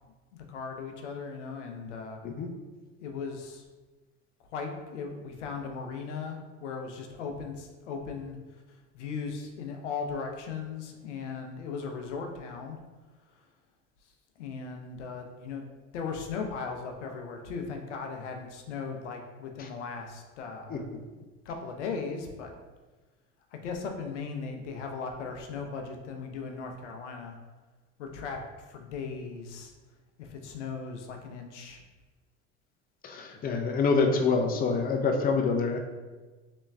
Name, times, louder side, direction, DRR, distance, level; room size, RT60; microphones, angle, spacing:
voice 1, 0.3-2.2 3.0-3.6 4.5-8.4 8.9-12.8 14.4-15.6 15.9-20.8 21.5-22.5 23.5-27.4 28.0-29.7 30.2-31.8, left 5 dB, 85° left, 3 dB, 0.6 m, -37 dB
voice 2, 33.0-35.8, left 4 dB, 25° left, 4 dB, 0.5 m, -26 dB
3.3 x 3.0 x 3.2 m, 1.3 s
hypercardioid pair, 75°, 35 cm